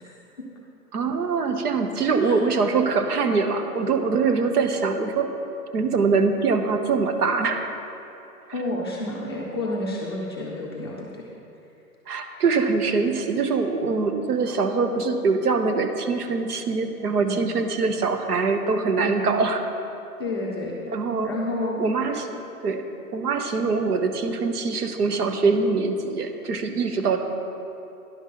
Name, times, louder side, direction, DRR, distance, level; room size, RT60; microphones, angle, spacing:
voice 1, 0.9-5.3 5.7-7.7 12.1-19.6 20.9-21.3 21.8-22.8 23.1-27.2, right 4 dB, 75° right, 7 dB, 1.1 m, -23 dB
voice 2, 8.5-11.3 17.2-17.4 18.9-19.2 20.2-20.8 21.2-21.8 27.0-27.2, left 1 dB, 15° left, -4 dB, 0.5 m, -30 dB
10.5 x 5.5 x 6.4 m, 2.9 s
hypercardioid pair, 155°, 46 cm